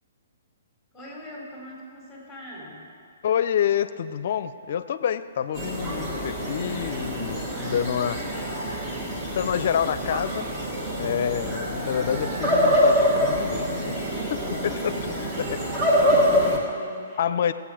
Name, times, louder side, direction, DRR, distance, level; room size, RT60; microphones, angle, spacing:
voice 1, 0.9-2.9 7.5-8.8 14.6-15.2 16.0-17.5, equal, 5° left, -4 dB, 4.0 m, -43 dB
voice 2, 3.2-8.2 9.3-10.5 11.0-14.0 14.3-15.6 16.1-16.6 17.2-17.5, left 9 dB, 55° left, 14 dB, 0.6 m, -28 dB
sound 1, 5.5-16.6, equal, 20° right, 2.3 m, -25 dB
18.5 x 8.0 x 5.0 m, 2.4 s
hypercardioid pair, 135°, 0 cm